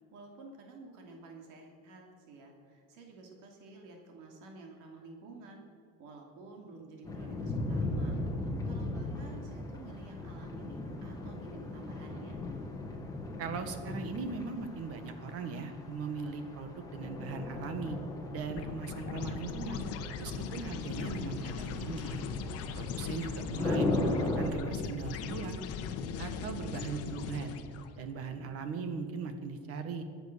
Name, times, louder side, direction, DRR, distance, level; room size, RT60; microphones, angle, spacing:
voice 1, 0.1-5.6 6.0-8.2 8.6-12.4, right 3 dB, 70° right, 1 dB, 2.8 m, -51 dB
sound 1, 7.0-24.5, left 2 dB, 10° left, 1.7 m, -38 dB
voice 2, 13.4-18.0 18.3-19.8 20.2-22.2 22.7-25.6 26.2-27.6 28.0-30.0, right 4 dB, 45° right, 8 dB, 1.7 m, -39 dB
sound 2, 18.4-27.9, left 6 dB, 50° left, 1.2 m, -39 dB
23.0 x 8.1 x 6.7 m, 2.5 s
cardioid pair, 175°, 32 cm